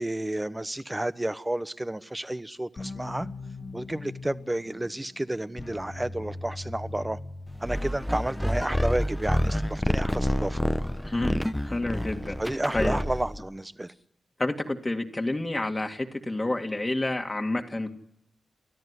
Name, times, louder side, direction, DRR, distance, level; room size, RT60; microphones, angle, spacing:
voice 1, 0.0-3.3 3.7-7.2 7.6-10.6 12.4-13.9, right 1 dB, 15° right, 1.1 m, -31 dB
sound 1, 2.8-8.4, left 2 dB, 45° left, 2.1 m, -40 dB
sound 2, 7.6-13.4, equal, 5° left, 1.0 m, -28 dB
voice 2, 11.1-12.4 12.7-13.0 14.4-17.9, left 2 dB, 25° left, 2.1 m, -29 dB
29.5 x 13.5 x 9.8 m
supercardioid pair, 40°, 0 cm